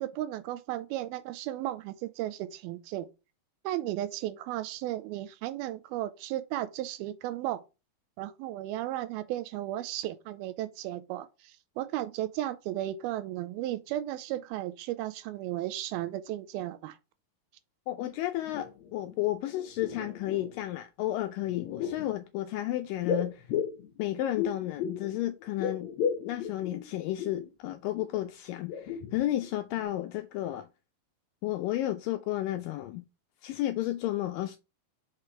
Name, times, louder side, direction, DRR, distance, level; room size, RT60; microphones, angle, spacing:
voice 1, 0.0-3.1 3.6-7.6 8.2-17.0, right 14 dB, 85° right, 2.5 m, -35 dB
voice 2, 17.9-23.5 24.0-25.9 26.2-30.7 31.4-33.0 33.4-34.6, left 14 dB, 85° left, 2.0 m, -32 dB
sound 1, 18.0-18.1 18.4-19.2 19.5-20.7 21.4-22.1 23.0-25.1 25.4-27.5 27.9-28.1 28.5-29.5 29.8-29.9, left 7 dB, 70° left, 1.8 m, -35 dB
5.8 x 5.0 x 4.4 m
omnidirectional pair, 4.4 m